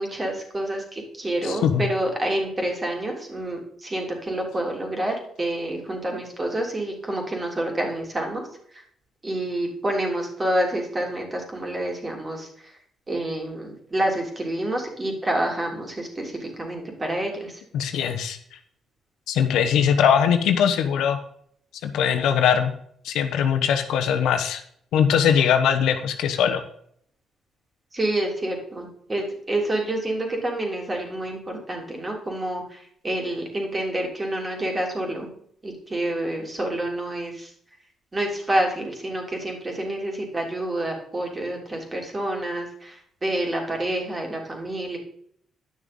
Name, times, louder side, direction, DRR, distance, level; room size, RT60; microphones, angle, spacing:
voice 1, 0.0-8.4 8.7-8.8 9.2-12.7 13.1-17.6 27.9-35.3 35.6-37.5 38.1-45.0, right 1 dB, 25° right, 1 dB, 3.4 m, -28 dB
voice 2, 1.4-1.8 17.7-18.4 19.3-21.2 21.8-22.7 23.0-24.6 24.9-26.6, left 8 dB, 85° left, 7 dB, 1.1 m, -21 dB
10.5 x 6.3 x 5.3 m, 0.66 s
cardioid pair, 90°, 0 cm